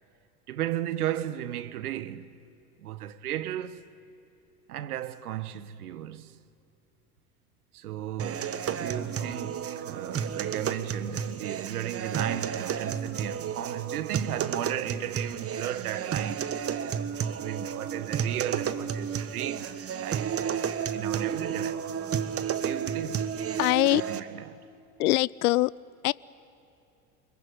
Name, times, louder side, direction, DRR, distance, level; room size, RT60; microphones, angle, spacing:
voice 1, 0.5-2.3 2.8-3.8 4.7-6.4 7.7-16.5 17.3-22.0 22.6-23.3 23.9-24.6, right 12 dB, 80° right, 1.2 m, -35 dB
sound 1, 8.2-24.2, right 8 dB, 30° right, 1.4 m, -32 dB
voice 2, 23.6-24.0 25.0-25.7 26.0-26.1, left 20 dB, 75° left, 0.5 m, -22 dB
25.5 x 22.5 x 9.9 m
hypercardioid pair, 80°, 44 cm